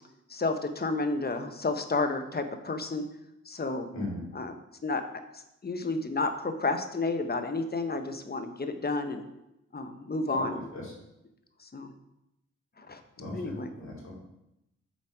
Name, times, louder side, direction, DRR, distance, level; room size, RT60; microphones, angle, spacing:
voice 1, 0.3-3.0 3.5-3.9 4.3-4.5 4.8-5.0 5.6-9.2 9.7-10.6 11.6-11.9 12.8-13.0 13.3-13.7, left 3 dB, 30° left, 7 dB, 1.0 m, -31 dB
voice 2, 3.9-4.3 10.3-10.9 13.2-14.1, left 2 dB, 55° left, -4 dB, 2.8 m, -38 dB
7.2 x 4.0 x 4.9 m, 0.87 s
supercardioid pair, 45°, 33 cm